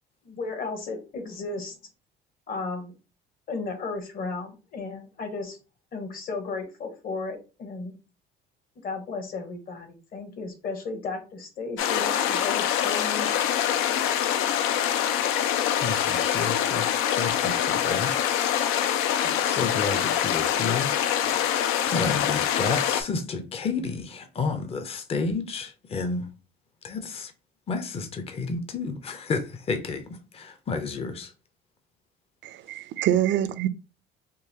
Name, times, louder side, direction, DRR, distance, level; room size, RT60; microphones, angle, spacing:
voice 1, 0.2-1.7 2.5-2.9 3.5-5.6 5.9-7.9 8.8-13.3, left 3 dB, 45° left, 1.1 m, -34 dB
sound 1, 11.8-23.0, left 10 dB, 85° left, 0.5 m, -25 dB
voice 2, 15.7-18.1 19.2-20.9 21.2-21.6 21.8-26.3 26.8-27.3 27.7-31.3, left 4 dB, 30° left, 0.6 m, -31 dB
voice 3, 32.4-33.7, right 11 dB, 65° right, 0.4 m, -25 dB
3.8 x 2.5 x 2.8 m
cardioid pair, 110°, 21 cm